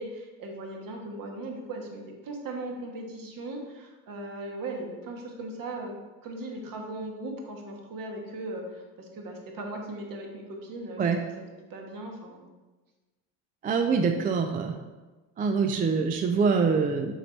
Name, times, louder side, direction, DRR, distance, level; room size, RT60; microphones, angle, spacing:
voice 1, 0.0-5.9 6.2-12.5, right 2 dB, 55° right, 1 dB, 1.4 m, -38 dB
voice 2, 13.6-14.8 15.4-17.1, right 5 dB, 20° right, 5 dB, 0.4 m, -24 dB
6.2 x 3.1 x 5.2 m, 1.2 s
supercardioid pair, 95°, 41 cm